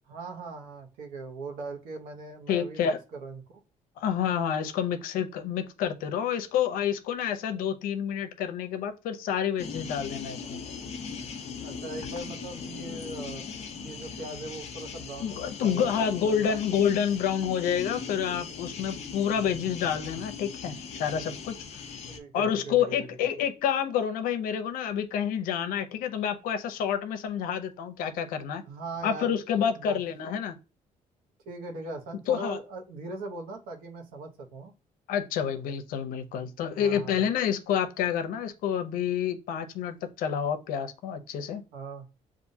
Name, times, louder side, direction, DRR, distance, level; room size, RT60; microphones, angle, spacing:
voice 1, 0.1-3.6 11.6-13.4 13.8-16.6 22.1-23.1 28.7-29.4 29.7-30.0 31.5-34.7 36.7-37.3 41.7-42.1, right 2 dB, 90° right, 1.0 m, -40 dB
voice 2, 2.5-3.0 4.0-10.6 15.2-21.6 22.3-28.6 29.0-30.6 32.3-32.6 35.1-41.6, left 8 dB, 90° left, 0.6 m, -28 dB
sound 1, 9.6-22.2, left 5 dB, 50° left, 0.8 m, -39 dB
6.8 x 2.5 x 2.7 m
cardioid pair, 105°, 14 cm